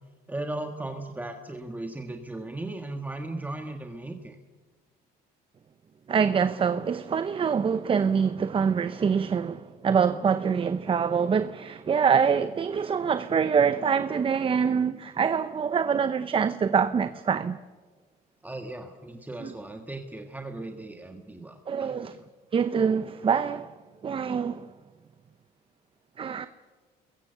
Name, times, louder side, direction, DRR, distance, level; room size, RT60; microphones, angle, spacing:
voice 1, 0.3-4.3 18.4-22.1, right 2 dB, 10° right, 1.6 m, -37 dB
voice 2, 6.1-17.6 19.4-19.5 21.7-22.1 22.5-23.7 24.0-24.7 26.2-26.5, right 6 dB, 30° right, 0.8 m, -25 dB
29.0 x 22.0 x 6.9 m
cardioid pair, 110°, 17 cm